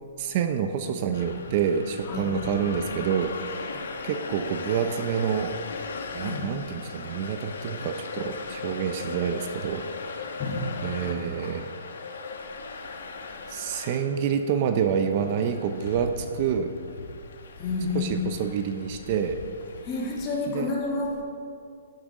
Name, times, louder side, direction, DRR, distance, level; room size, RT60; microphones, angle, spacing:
voice 1, 0.2-3.8 4.0-5.5 6.1-10.2 10.8-11.7 13.5-16.7 17.9-19.4 20.5-20.7, right 7 dB, 40° right, 8 dB, 0.7 m, -28 dB
sound 1, 1.1-20.5, left 4 dB, 75° left, 1.4 m, -38 dB
voice 2, 17.6-18.2 19.8-21.2, left 3 dB, 25° left, -4 dB, 3.0 m, -29 dB
12.0 x 11.5 x 3.8 m, 2.3 s
hypercardioid pair, 150°, 0 cm